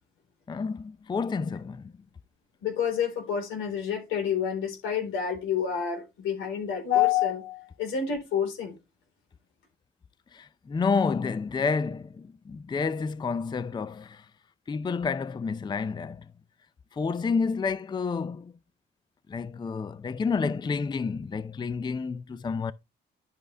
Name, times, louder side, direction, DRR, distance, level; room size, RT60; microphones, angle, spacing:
voice 1, 0.5-1.9 10.3-14.3 14.7-16.3 16.9-18.5 19.3-22.7, left 5 dB, 20° left, 0.4 m, -29 dB
voice 2, 2.6-8.8, left 8 dB, 85° left, 3.9 m, -28 dB
11.0 x 5.4 x 3.4 m
cardioid pair, 90°, 20 cm